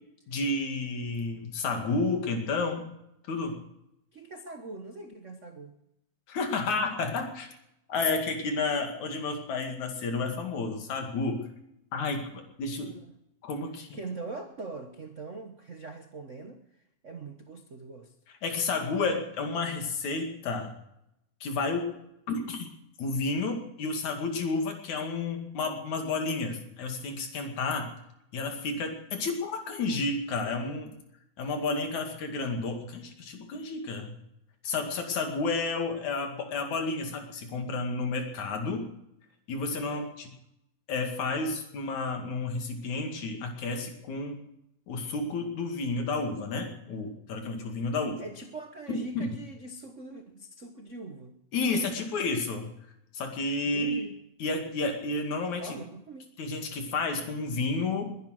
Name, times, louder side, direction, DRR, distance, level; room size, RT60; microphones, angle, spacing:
voice 1, 0.3-2.9 3.3-3.6 6.3-7.5 7.9-11.5 11.9-12.9 13.4-14.0 18.4-20.7 21.4-22.0 22.3-22.7 23.0-27.9 28.3-31.0 31.4-34.1 34.6-38.9 39.5-40.3 40.9-44.4 44.9-48.2 48.9-49.3 51.5-52.7 53.1-54.0 54.4-55.8 56.4-58.2, left 3 dB, 80° left, 4 dB, 3.6 m, -31 dB
voice 2, 4.1-5.8 12.8-13.1 13.9-16.6 17.0-18.1 39.8-40.0 46.8-47.3 48.2-51.4 53.6-54.1 55.6-56.4, right 3 dB, 75° right, 6 dB, 0.6 m, -42 dB
21.5 x 10.5 x 6.4 m, 0.83 s
omnidirectional pair, 3.3 m